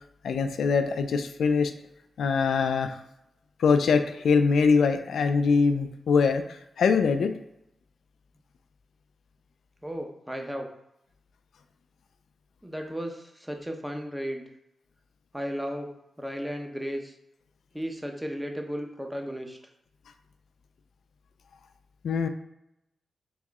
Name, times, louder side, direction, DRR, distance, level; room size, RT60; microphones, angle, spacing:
voice 1, 0.2-1.7 2.2-3.0 3.6-7.4 22.0-22.3, left 5 dB, 80° left, 8 dB, 0.3 m, -23 dB
voice 2, 9.8-10.7 12.6-14.4 15.3-17.1 17.7-19.6, equal, 10° right, 3 dB, 0.9 m, -34 dB
3.6 x 3.0 x 3.5 m, 0.84 s
cardioid pair, 45°, 0 cm